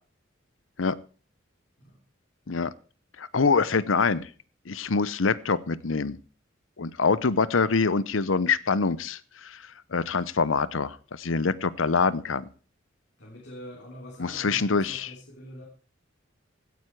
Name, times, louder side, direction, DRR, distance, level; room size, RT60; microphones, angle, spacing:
voice 1, 3.2-4.3 4.7-6.2 6.8-9.6 9.9-12.5 14.2-15.1, left 4 dB, 90° left, 18 dB, 0.8 m, -25 dB
voice 2, 13.2-15.7, equal, 60° left, -2 dB, 3.5 m, -44 dB
16.5 x 9.5 x 4.7 m, 0.38 s
head